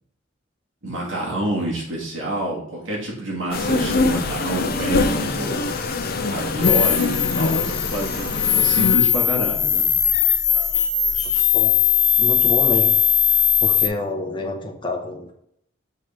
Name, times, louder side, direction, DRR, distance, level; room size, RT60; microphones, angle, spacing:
voice 1, 0.8-5.7 6.2-9.8, right 1 dB, 90° right, -3 dB, 2.3 m, -27 dB
sound 1, 3.5-9.0, left 3 dB, 50° left, 0.6 m, -24 dB
sound 2, 6.6-13.9, left 9 dB, 85° left, 1.1 m, -19 dB
voice 2, 12.2-12.9 13.6-15.3, left 2 dB, 25° left, 1 dB, 0.9 m, -27 dB
6.4 x 3.9 x 4.4 m, 0.70 s
head